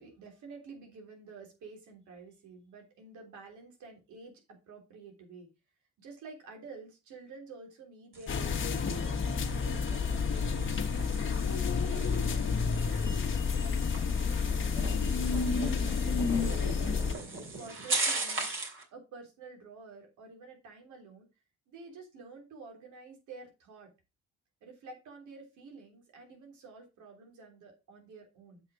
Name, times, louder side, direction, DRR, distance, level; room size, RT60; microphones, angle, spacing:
voice 1, 0.0-5.5 6.0-11.4 11.9-14.2 14.7-17.2 17.5-18.5 18.9-21.3 21.7-23.9 24.6-28.6, right 4 dB, 85° right, 3 dB, 3.4 m, -50 dB
sound 1, 8.1-18.8, right 3 dB, 45° right, 3.1 m, -39 dB
sound 2, 8.3-17.1, left 5 dB, 45° left, 1.6 m, -30 dB
8.1 x 5.6 x 4.9 m, 0.27 s
cardioid pair, 95°, 29 cm